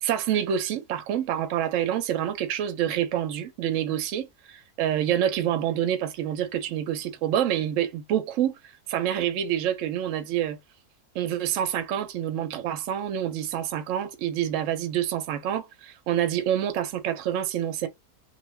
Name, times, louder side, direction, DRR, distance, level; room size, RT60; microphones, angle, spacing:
voice 1, 0.0-8.6 8.9-10.6 11.1-17.9, right 10 dB, 65° right, 0.8 m, -27 dB
2.6 x 2.4 x 3.1 m
omnidirectional pair, 1.6 m